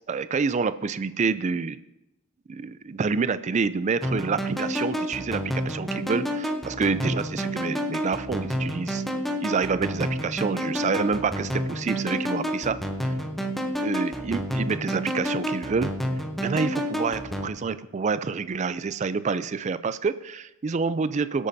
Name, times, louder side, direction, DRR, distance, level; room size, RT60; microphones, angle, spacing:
voice 1, 0.1-1.8 2.5-9.0 9.4-13.1 13.8-15.9 16.4-21.5, right 5 dB, 35° right, 14 dB, 0.3 m, -27 dB
sound 1, 4.0-17.5, equal, ahead, 0.7 m, -29 dB
21.5 x 8.5 x 2.7 m, 0.96 s
head